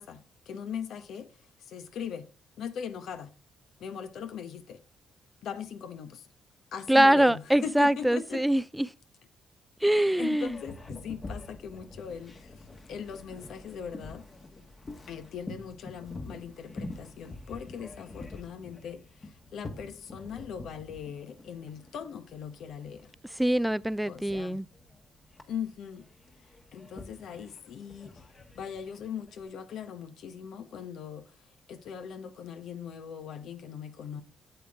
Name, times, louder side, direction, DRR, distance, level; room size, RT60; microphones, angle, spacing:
voice 1, 0.0-2.3 2.6-3.3 3.8-4.8 5.4-6.3 6.7-8.4 10.2-14.3 15.1-23.1 24.1-24.6 25.5-26.1 26.7-28.2 28.5-34.2, left 7 dB, 75° left, 0.9 m, -40 dB
voice 2, 6.9-8.9 9.8-10.5 23.4-24.6, right 1 dB, 5° right, 0.3 m, -23 dB
Boat Water vehicle, 10.4-29.4, left 2 dB, 30° left, 1.4 m, -46 dB
8.1 x 7.8 x 3.5 m
cardioid pair, 90°, 0 cm